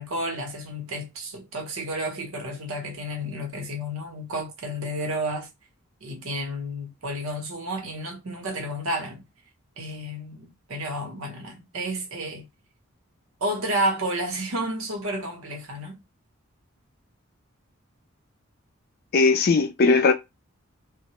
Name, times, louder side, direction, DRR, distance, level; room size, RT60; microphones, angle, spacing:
voice 1, 0.0-5.5 6.0-9.2 9.8-12.5 13.4-16.0, right 1 dB, 85° right, 0.8 m, -31 dB
voice 2, 19.1-20.1, left 4 dB, 45° left, 0.4 m, -18 dB
2.1 x 2.1 x 2.9 m
head